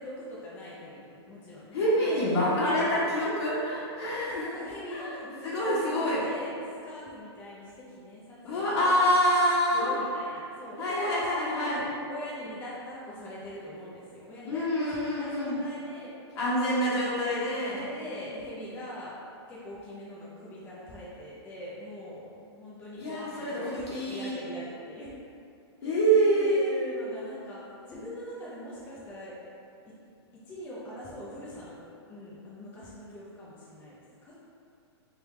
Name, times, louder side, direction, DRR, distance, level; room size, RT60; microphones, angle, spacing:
voice 1, 0.0-2.7 4.3-9.0 9.7-11.7 12.1-16.1 17.7-19.1 19.5-25.2 25.8-26.0 26.4-29.3 30.5-31.8 32.1-34.4, equal, 15° left, -7 dB, 0.4 m, -42 dB
voice 2, 1.7-4.5 4.9-5.2 5.4-6.2 8.4-9.9 10.8-11.8 14.5-15.5 16.4-17.8 23.0-24.4 25.8-26.7, equal, 70° left, -8 dB, 1.3 m, -26 dB
3.3 x 2.2 x 3.0 m, 2.5 s
hypercardioid pair, 145°, 14 cm